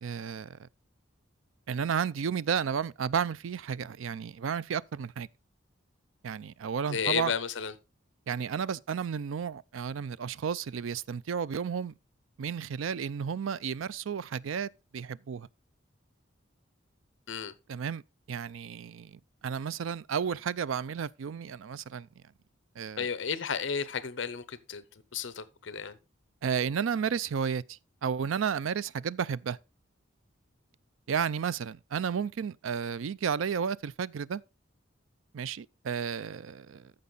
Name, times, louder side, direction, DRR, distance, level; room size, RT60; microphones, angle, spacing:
voice 1, 0.0-0.6 1.7-5.3 6.2-7.3 8.3-11.9 12.4-15.5 17.7-18.0 18.3-22.1 22.8-23.1 26.4-29.6 31.1-34.4 35.3-36.9, right 7 dB, 85° right, 0.4 m, -32 dB
voice 2, 6.9-7.7 17.3-17.5 23.0-24.8 25.1-26.0, left 6 dB, 70° left, 0.8 m, -32 dB
14.0 x 5.3 x 3.9 m
head